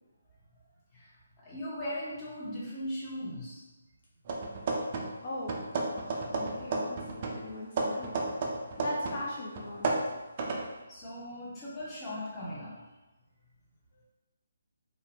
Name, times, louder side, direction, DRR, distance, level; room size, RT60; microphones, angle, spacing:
voice 1, 1.4-3.6 10.9-12.7, left 1 dB, 15° left, -8 dB, 0.7 m, -38 dB
sound 1, 4.3-5.2 5.5-9.3 9.6-10.7, right 3 dB, 35° right, 0.3 m, -33 dB
voice 2, 5.2-5.5 5.9-8.1 8.8-9.9, left 1 dB, 50° left, -4 dB, 0.5 m, -39 dB
2.6 x 2.1 x 2.8 m, 1.1 s
figure-of-eight pair, 150°, 0 cm